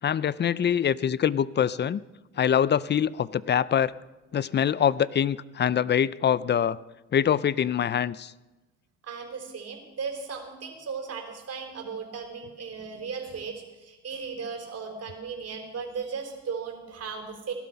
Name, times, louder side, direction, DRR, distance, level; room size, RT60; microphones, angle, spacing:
voice 1, 0.0-2.0 2.4-3.9 4.3-6.8 7.1-8.3, left 9 dB, 35° left, 19 dB, 0.5 m, -24 dB
voice 2, 9.0-17.5, right 5 dB, 55° right, 3 dB, 3.8 m, -36 dB
17.5 x 12.0 x 5.8 m, 1.1 s
cardioid pair, 90°, 30 cm